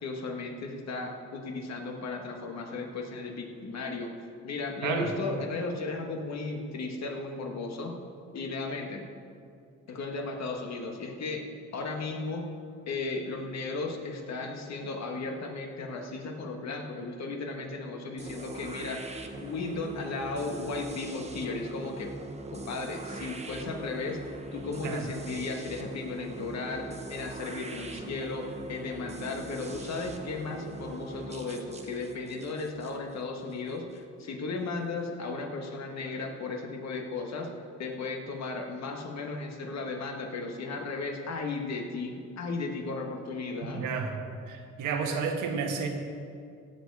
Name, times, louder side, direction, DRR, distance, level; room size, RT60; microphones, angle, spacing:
voice 1, 0.0-4.1 4.4-8.0 8.3-9.1 9.9-11.4 11.7-12.5 12.9-22.1 22.5-26.8 27.1-37.5 37.8-43.9, left 3 dB, 60° left, 2 dB, 1.7 m, -35 dB
voice 2, 4.8-5.1 24.8-25.1 43.6-44.2 44.5-45.9, right 5 dB, 90° right, 3 dB, 1.5 m, -31 dB
sound 1, 18.2-34.0, right 3 dB, 20° right, 1.1 m, -42 dB
16.5 x 7.1 x 4.9 m, 2.3 s
cardioid pair, 90°, 30 cm